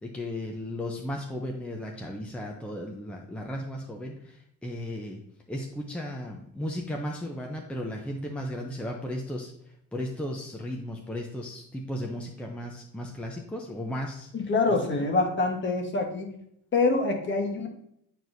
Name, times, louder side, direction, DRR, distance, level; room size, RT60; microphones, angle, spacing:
voice 1, 0.0-5.2 5.5-9.5 9.9-14.3, left 1 dB, 5° left, 0 dB, 0.6 m, -35 dB
voice 2, 14.3-16.3 16.7-17.7, left 3 dB, 35° left, 3 dB, 1.3 m, -25 dB
9.1 x 4.6 x 2.6 m, 0.74 s
cardioid pair, 125°, 33 cm